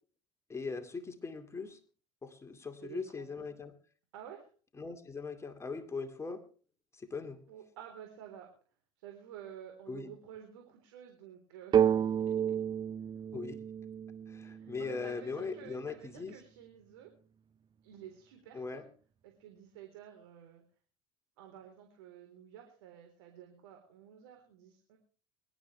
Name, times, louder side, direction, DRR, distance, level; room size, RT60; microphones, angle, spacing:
voice 1, 0.5-1.8 2.2-3.7 4.8-6.4 6.9-7.4 9.9-10.1 13.3-13.6 14.3-16.4 18.5-18.9, left 4 dB, 20° left, 5 dB, 2.4 m, -40 dB
voice 2, 2.8-3.5 4.1-4.5 7.5-8.5 9.0-12.1 14.4-17.1 17.8-18.9 19.2-20.6 21.4-25.0, right 9 dB, 75° right, 3 dB, 3.9 m, -51 dB
sound 1, 11.7-15.4, right 9 dB, 30° right, 0.6 m, -31 dB
24.5 x 12.5 x 3.3 m, 0.41 s
hypercardioid pair, 80°, 14 cm